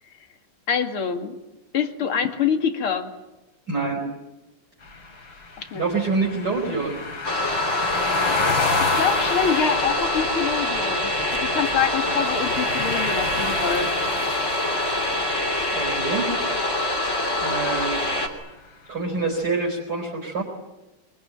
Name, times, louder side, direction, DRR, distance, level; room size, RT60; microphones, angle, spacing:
voice 1, 0.7-1.3 1.7-3.1 5.6-5.8 8.8-11.1 11.4-13.9, left 7 dB, 80° left, 6 dB, 3.0 m, -25 dB
voice 2, 3.7-4.1 5.7-7.0 15.7-16.3 17.4-18.0 18.9-20.4, right 3 dB, 50° right, -1 dB, 5.1 m, -26 dB
sound 1, 4.8-16.9, left 3 dB, 65° left, 3.8 m, -30 dB
sound 2, 7.2-18.3, left 1 dB, 35° left, 3.3 m, -25 dB
24.0 x 22.0 x 9.1 m, 1.0 s
omnidirectional pair, 2.3 m